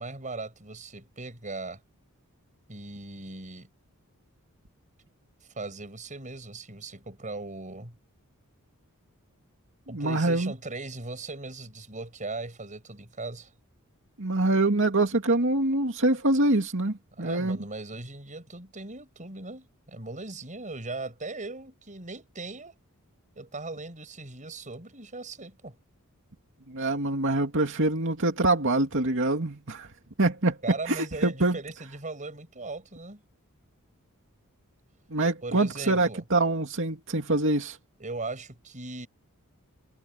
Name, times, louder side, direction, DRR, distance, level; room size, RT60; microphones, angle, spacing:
voice 1, 0.0-1.8 2.7-3.7 5.5-8.0 9.9-13.5 17.1-22.8 23.4-25.8 30.6-33.2 35.4-36.2 38.0-39.1, right 3 dB, 35° right, 6.9 m, -39 dB
voice 2, 9.9-10.5 14.2-17.6 26.7-29.9 30.2-30.6 30.9-31.6 35.1-37.8, right 2 dB, 60° right, 2.4 m, -25 dB
head